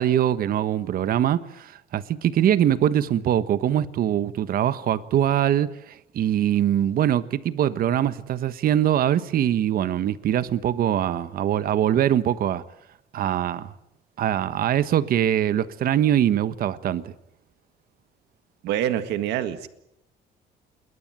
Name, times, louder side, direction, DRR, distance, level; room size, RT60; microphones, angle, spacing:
voice 1, 0.0-12.6 13.1-13.7 14.2-17.1, right 10 dB, 60° right, 1.3 m, -23 dB
voice 2, 18.6-19.7, right 11 dB, 80° right, 1.8 m, -26 dB
29.0 x 21.5 x 9.0 m
cardioid pair, 110°, 17 cm